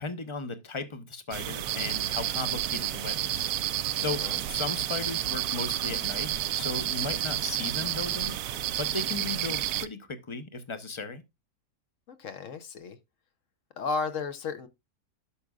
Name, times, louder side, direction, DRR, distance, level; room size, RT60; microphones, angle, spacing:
voice 1, 0.0-8.4 8.8-11.2, left 3 dB, 25° left, 0.7 m, -36 dB
sound 1, 1.3-9.9, right 12 dB, 80° right, 1.1 m, -30 dB
voice 2, 4.1-4.4 12.1-13.0 13.8-14.7, left 4 dB, 60° left, 1.2 m, -34 dB
11.5 x 6.1 x 2.3 m
omnidirectional pair, 1.6 m